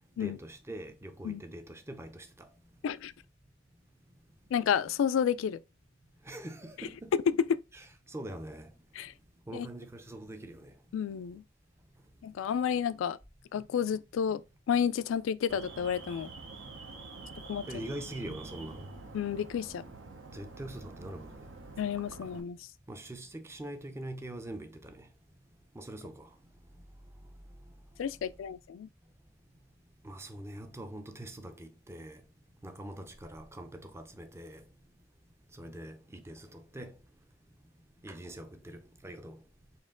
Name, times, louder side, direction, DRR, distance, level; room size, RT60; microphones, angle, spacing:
voice 1, 0.2-2.5 6.3-7.1 7.7-8.7 9.5-10.7 17.7-18.8 20.3-21.5 22.9-25.0 25.8-26.3 30.0-32.2 32.6-34.6 35.6-36.9 38.0-39.4, right 1 dB, 15° right, 0.5 m, -43 dB
voice 2, 4.5-5.6 7.1-7.6 9.0-9.1 9.5-9.7 10.9-11.4 12.2-13.2 13.5-14.4 14.7-16.3 17.5-17.7 19.1-19.8 21.8-22.6 28.0-28.9, left 7 dB, 80° left, 0.3 m, -30 dB
Alarm, 15.5-22.4, right 3 dB, 70° right, 0.8 m, -47 dB
4.3 x 2.9 x 3.7 m
head